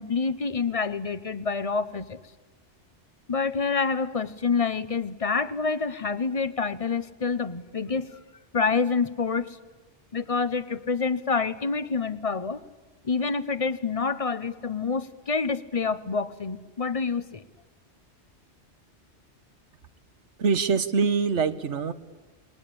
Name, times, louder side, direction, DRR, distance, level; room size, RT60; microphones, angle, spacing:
voice 1, 0.0-2.2 3.3-8.2 8.5-9.6 10.1-12.6 13.0-17.4, left 4 dB, 35° left, 14 dB, 0.9 m, -27 dB
voice 2, 20.4-21.9, right 5 dB, 85° right, 12 dB, 1.5 m, -24 dB
28.0 x 21.5 x 8.6 m, 1.2 s
omnidirectional pair, 1.2 m